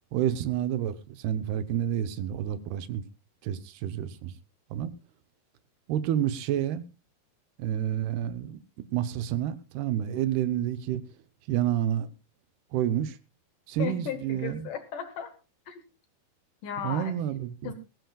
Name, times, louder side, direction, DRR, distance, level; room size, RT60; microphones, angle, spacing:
voice 1, 0.1-3.0 3.4-4.3 4.7-4.9 5.9-6.8 7.6-8.6 8.9-11.0 11.5-12.1 12.7-13.2 13.7-14.7 16.8-17.7, right 11 dB, 80° right, 2.8 m, -29 dB
voice 2, 13.8-15.3 15.7-15.8 16.6-17.1 17.6-17.7, left 8 dB, 70° left, 2.2 m, -35 dB
20.0 x 16.0 x 2.3 m
omnidirectional pair, 4.7 m